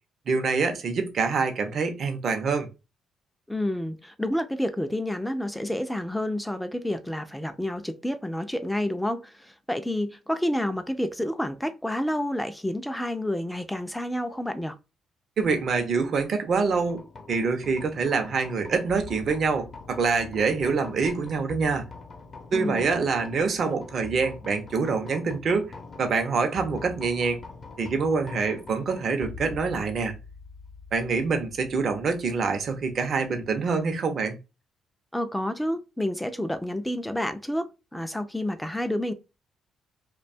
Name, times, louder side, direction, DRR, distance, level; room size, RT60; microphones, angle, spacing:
voice 1, 0.3-2.7 15.4-21.9 22.5-27.4 27.8-30.1 30.9-34.4, right 4 dB, 55° right, 0.6 m, -26 dB
voice 2, 3.5-14.8 22.5-22.9 35.1-39.1, left 1 dB, 5° left, 0.4 m, -29 dB
sound 1, 16.7-33.9, left 4 dB, 40° left, 0.6 m, -45 dB
2.6 x 2.2 x 2.5 m
cardioid pair, 90°, 0 cm